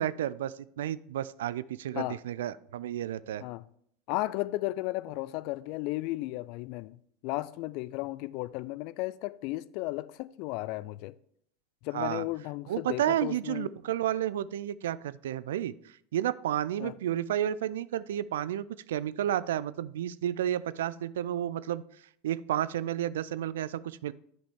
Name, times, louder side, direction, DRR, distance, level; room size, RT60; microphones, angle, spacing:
voice 1, 0.0-3.4 11.9-12.2 12.7-21.8 22.2-24.1, right 11 dB, 70° right, 0.3 m, -31 dB
voice 2, 4.1-11.1 11.8-13.7 16.8-16.9, left 19 dB, 55° left, 0.3 m, -34 dB
10.5 x 5.1 x 3.5 m
figure-of-eight pair, 80°, 0 cm